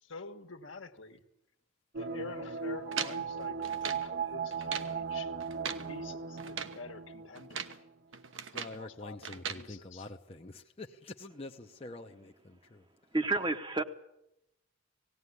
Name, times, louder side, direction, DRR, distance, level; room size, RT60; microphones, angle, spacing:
voice 1, 0.0-1.2 2.0-5.3 5.9-7.8 8.5-10.1, left 3 dB, 70° left, 6 dB, 1.6 m, -47 dB
sound 1, 1.9-7.9 8.2-8.3, right 6 dB, 50° right, 0.7 m, -38 dB
sound 2, 2.9-4.1 4.5-5.0 5.4-5.9 6.4-6.8 7.3-7.8 8.1-8.8 9.2-9.6, right 7 dB, 75° right, 1.1 m, -39 dB
voice 2, 8.5-12.8, left 2 dB, 30° left, 2 dB, 0.8 m, -46 dB
voice 3, 13.1-13.8, right 2 dB, 20° right, 8 dB, 0.9 m, -30 dB
18.5 x 17.0 x 9.6 m, 0.85 s
head